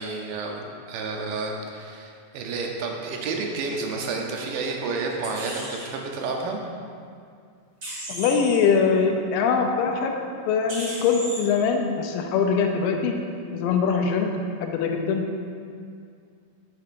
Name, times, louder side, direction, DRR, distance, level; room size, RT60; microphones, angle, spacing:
voice 1, 0.0-6.6, right 3 dB, 80° right, 1 dB, 2.4 m, -30 dB
sound 1, 5.2-5.9 7.8-8.6 10.7-11.4, right 1 dB, 45° right, 1.3 m, -35 dB
voice 2, 8.1-10.2 10.5-13.1 13.5-14.3 14.6-15.2, left 5 dB, 90° left, 3 dB, 2.3 m, -22 dB
8.3 x 7.5 x 2.5 m, 2.3 s
omnidirectional pair, 3.9 m